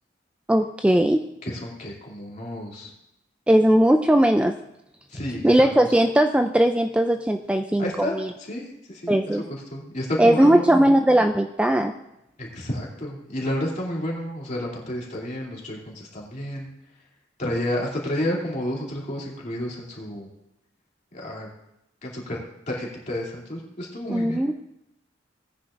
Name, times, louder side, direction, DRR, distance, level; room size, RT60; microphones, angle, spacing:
voice 1, 0.5-1.3 3.5-4.6 5.4-7.9 8.2-8.3 9.1-9.4 10.2-11.9 24.1-24.5, right 1 dB, 5° right, 6 dB, 0.3 m, -19 dB
voice 2, 1.4-2.9 5.1-6.0 7.8-10.7 12.4-16.7 17.4-20.3 21.1-21.5 22.0-22.4 22.7-24.4, left 1 dB, 40° left, -3 dB, 2.7 m, -31 dB
18.0 x 9.9 x 2.5 m, 0.87 s
head